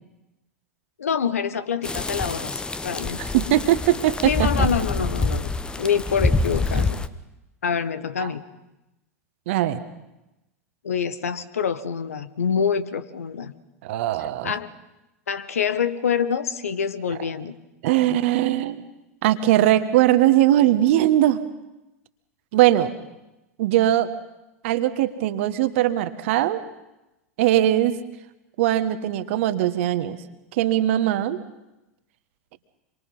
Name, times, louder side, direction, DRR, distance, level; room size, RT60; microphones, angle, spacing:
voice 1, 1.0-3.3 4.2-5.5 5.8-7.0 7.6-8.4 10.8-13.5 14.4-14.7 15.3-17.5, left 7 dB, 70° left, 13 dB, 1.4 m, -26 dB
sound 1, 1.8-7.1, left 3 dB, 10° left, 1.0 m, -26 dB
voice 2, 3.2-4.7 6.7-6.8 8.2-8.3 9.5-9.8 13.8-14.5 17.8-18.8 19.2-21.4 22.5-22.9 23.6-24.1 24.6-26.6 27.4-28.0 28.6-30.2 30.6-31.4, right 13 dB, 55° right, 11 dB, 1.5 m, -20 dB
26.5 x 23.5 x 5.7 m, 0.97 s
figure-of-eight pair, 90°, 8 cm